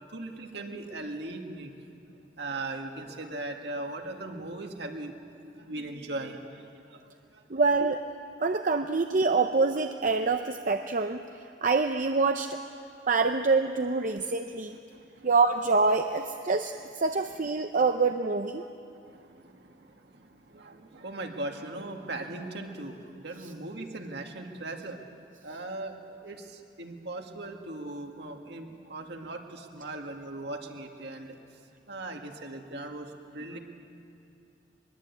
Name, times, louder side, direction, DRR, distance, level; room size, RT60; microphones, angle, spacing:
voice 1, 0.1-1.7 2.4-5.1 5.4-7.4 14.9-15.3 18.6-25.0 25.4-33.6, right 2 dB, 65° right, 3 dB, 2.1 m, -39 dB
voice 2, 7.5-8.0 8.4-12.6 13.1-14.8 15.2-18.6, right 4 dB, 45° right, 6 dB, 0.7 m, -26 dB
22.0 x 21.5 x 8.5 m, 2.6 s
head